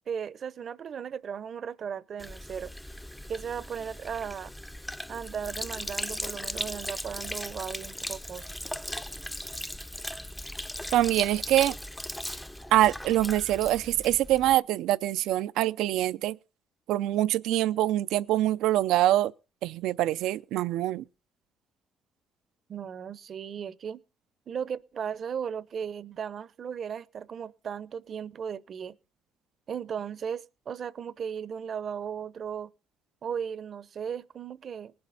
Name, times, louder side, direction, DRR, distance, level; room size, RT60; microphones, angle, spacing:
voice 1, 0.1-2.7 3.3-4.5 5.1-8.5 22.7-24.0 24.5-29.0 29.7-32.7 33.2-34.9, right 7 dB, 50° right, 0.8 m, -36 dB
Sink (filling or washing), 2.2-14.5, left 1 dB, 5° left, 0.6 m, -38 dB
voice 2, 10.9-11.8 12.7-16.4 16.9-19.3 19.6-21.0, right 14 dB, 80° right, 0.6 m, -24 dB
19.5 x 7.8 x 4.0 m
cardioid pair, 95°, 0 cm